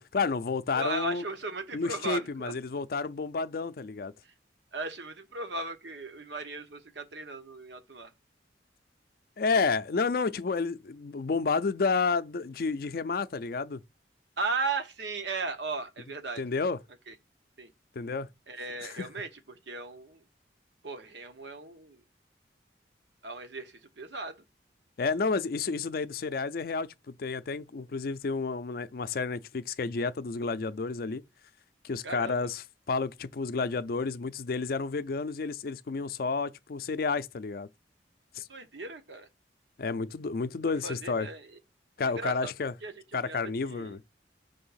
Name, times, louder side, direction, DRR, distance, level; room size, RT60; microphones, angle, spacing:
voice 1, 0.0-1.2 1.7-4.1 9.4-13.8 16.4-16.8 18.0-18.3 18.9-19.1 25.0-31.2 31.8-37.7 38.3-38.5 39.8-41.3 42.0-42.7 43.1-44.0, left 4 dB, 55° left, 0.4 m, -30 dB
voice 2, 0.7-2.5 4.2-4.3 4.7-8.1 14.4-16.4 17.1-17.2 17.6-17.7 18.5-20.2 20.8-22.0 23.2-24.4 32.0-32.5 38.5-39.3 40.8-41.6 42.0-42.5 42.8-44.0, right 3 dB, 80° right, 1.0 m, -37 dB
5.3 x 3.5 x 5.6 m
head